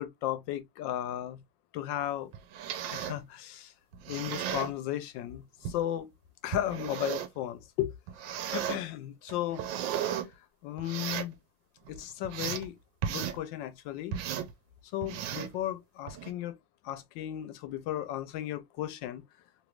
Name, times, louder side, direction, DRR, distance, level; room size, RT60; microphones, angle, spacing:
voice 1, 0.0-1.4 1.7-2.3 2.9-3.7 4.1-6.1 6.4-7.9 8.5-9.6 10.6-11.4 11.9-12.8 13.1-14.2 14.9-16.6 16.8-19.2, left 12 dB, 85° left, 1.3 m, -35 dB
sound 1, 2.3-3.2 3.9-4.7 5.6-5.8 6.5-7.4 8.1-8.8 9.3-10.3 10.8-11.3 11.9-12.7 13.0-13.4 14.1-14.5 15.0-15.6 16.1-16.3, right 9 dB, 85° right, 1.3 m, -35 dB
3.1 x 3.1 x 2.3 m
omnidirectional pair, 2.0 m